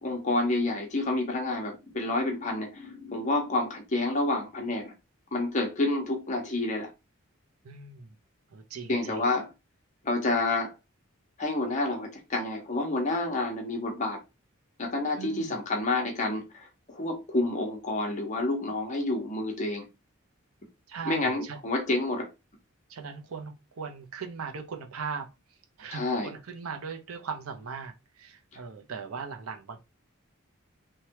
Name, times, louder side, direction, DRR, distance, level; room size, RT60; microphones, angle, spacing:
voice 1, 0.0-4.9 5.3-6.9 8.9-9.5 10.0-10.7 11.4-14.2 14.8-19.9 21.1-22.3 25.9-26.3, left 2 dB, 35° left, 0.8 m, -29 dB
voice 2, 7.6-8.2 8.5-9.3 15.1-15.6 20.9-21.6 22.9-25.3 25.8-29.8, right 5 dB, 85° right, 0.6 m, -39 dB
3.2 x 2.2 x 2.8 m
head